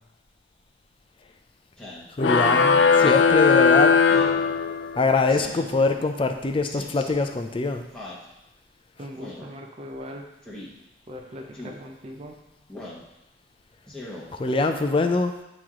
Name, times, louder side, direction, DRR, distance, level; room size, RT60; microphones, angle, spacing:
Speech synthesizer, 1.8-2.1 2.9-3.3 4.1-4.4 5.3-5.7 6.6-7.0 7.9-8.2 9.2-9.5 10.4-10.7 11.5-11.8 12.7-13.0 13.9-14.2, left 1 dB, 5° left, 1.1 m, -40 dB
sound 1, 2.2-5.1, left 5 dB, 90° left, 0.4 m, -18 dB
voice 1, 2.2-3.9 5.0-7.8 14.4-15.3, left 3 dB, 30° left, 6 dB, 0.4 m, -23 dB
voice 2, 9.0-10.3 11.1-12.4, equal, 35° right, 2 dB, 0.5 m, -39 dB
8.7 x 3.1 x 3.7 m, 0.93 s
head